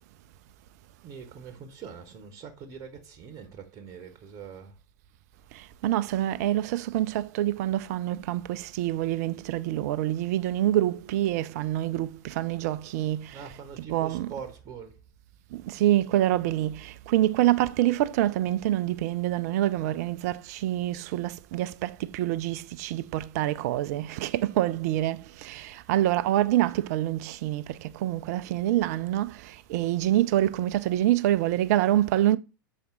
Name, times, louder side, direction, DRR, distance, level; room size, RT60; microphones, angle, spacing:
voice 1, 1.0-4.7 13.3-15.0, right 6 dB, 30° right, 1.0 m, -43 dB
voice 2, 5.8-13.3 13.9-14.3 15.8-16.8 17.1-25.2 25.4-27.6 28.0-29.3 29.7-32.4, right 14 dB, 50° right, 0.4 m, -26 dB
7.0 x 4.2 x 3.7 m
figure-of-eight pair, 90°, 11 cm